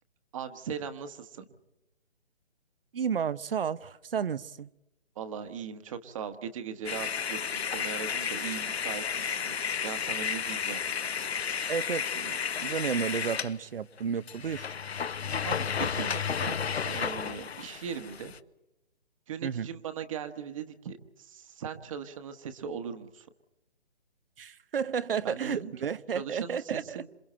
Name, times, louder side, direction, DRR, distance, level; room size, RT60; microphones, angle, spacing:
voice 1, 0.3-1.5 5.1-9.6 9.8-10.8 15.4-16.6 16.8-18.3 19.3-23.3 25.2-25.7 26.1-27.1, right 7 dB, 30° right, 8 dB, 1.4 m, -39 dB
voice 2, 2.9-4.7 11.7-14.7 19.4-19.7 24.4-27.0, right 7 dB, 60° right, 17 dB, 0.9 m, -32 dB
sound 1, 6.9-13.5 14.0-14.1 14.3-18.4, left 7 dB, 75° left, 1.0 m, -32 dB
27.5 x 26.0 x 4.4 m, 0.93 s
hypercardioid pair, 155°, 32 cm